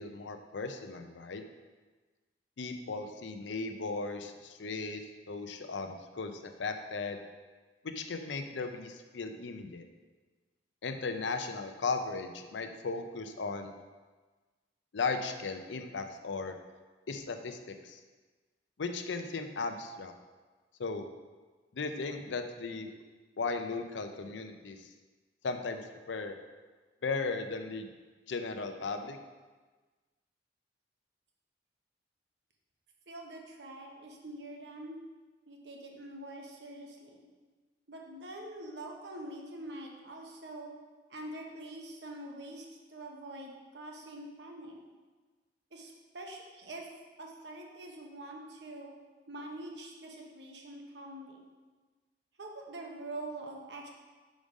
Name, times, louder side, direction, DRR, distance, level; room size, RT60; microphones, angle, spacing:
voice 1, 0.0-1.4 2.6-5.0 5.3-7.2 7.8-9.8 10.8-13.7 14.9-16.6 17.1-18.0 18.8-20.1 20.8-21.1 21.7-22.9 23.4-24.9 25.4-25.8 26.1-26.4 27.0-27.9 28.3-29.2, left 4 dB, 85° left, 6 dB, 0.6 m, -36 dB
voice 2, 33.1-35.0 35.4-37.3 37.9-40.7 41.1-42.6 42.9-44.8 45.7-46.9 47.2-48.9 49.3-51.4 52.4-53.9, right 1 dB, 65° right, 1 dB, 1.0 m, -45 dB
5.3 x 5.0 x 5.0 m, 1.3 s
head